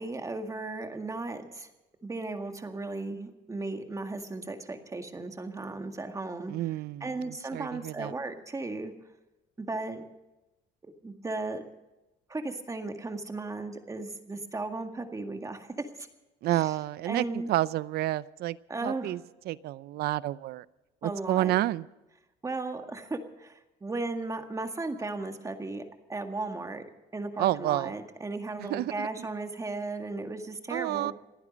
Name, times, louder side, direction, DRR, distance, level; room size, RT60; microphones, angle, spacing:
voice 1, 0.0-1.7 2.0-6.5 7.0-8.9 9.6-10.0 10.8-11.6 12.3-16.1 16.5-16.7 17.1-17.5 18.7-19.1 21.0-21.5 22.4-25.8 26.1-26.8 27.1-31.1, right 3 dB, 20° right, 6 dB, 1.9 m, -36 dB
voice 2, 6.5-8.1 16.4-18.6 18.8-19.2 19.5-20.6 21.0-21.9 27.4-27.9 28.6-29.3 30.7-31.1, right 15 dB, 70° right, 19 dB, 0.6 m, -30 dB
28.0 x 9.7 x 5.2 m, 1.0 s
cardioid pair, 110°, 17 cm